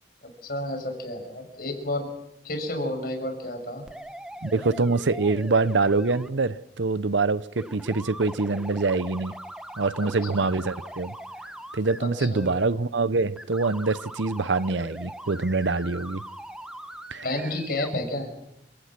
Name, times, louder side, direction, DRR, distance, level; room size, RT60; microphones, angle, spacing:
voice 1, 0.2-2.1 2.4-3.8 10.0-10.4 12.0-12.5 17.2-18.3, left 1 dB, 55° left, 6.2 m, -31 dB
sound 1, 3.9-6.3 7.6-12.0 12.3-12.7 13.4-17.9, right 1 dB, 5° right, 1.0 m, -41 dB
voice 2, 4.4-9.3 9.8-11.1 11.7-16.2 17.1-17.2, right 3 dB, 90° right, 0.8 m, -25 dB
29.0 x 18.0 x 6.1 m
head